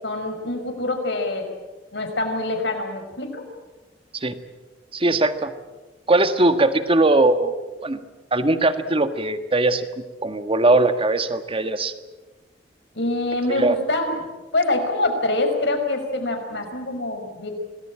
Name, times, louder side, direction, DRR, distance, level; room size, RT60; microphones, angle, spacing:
voice 1, 0.0-1.5 1.9-3.4 12.9-14.1 14.5-17.5, left 2 dB, 70° left, 4 dB, 5.6 m, -25 dB
voice 2, 4.9-5.5 6.1-8.0 8.3-9.9 10.2-11.9 13.5-13.7, right 2 dB, 30° right, 9 dB, 1.6 m, -20 dB
26.5 x 19.5 x 8.8 m, 1.2 s
head